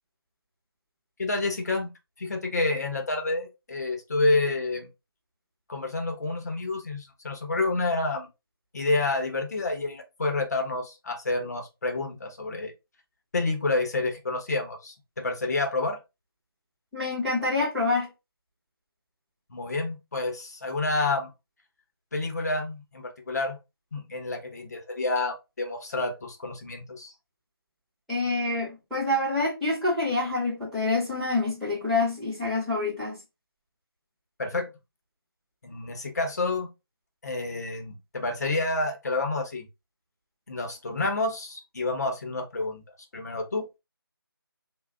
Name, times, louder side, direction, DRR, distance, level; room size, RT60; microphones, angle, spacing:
voice 1, 1.2-1.9 2.2-4.9 5.7-8.3 8.7-12.7 13.3-16.0 19.5-21.3 22.1-23.6 23.9-27.1 34.4-34.7 35.6-36.7 37.2-39.7 40.5-42.8 43.1-43.8, left 2 dB, 45° left, 0.9 m, -29 dB
voice 2, 16.9-18.1 28.1-33.2, left 2 dB, ahead, 0.7 m, -27 dB
3.2 x 2.3 x 3.6 m
figure-of-eight pair, 170°, 12 cm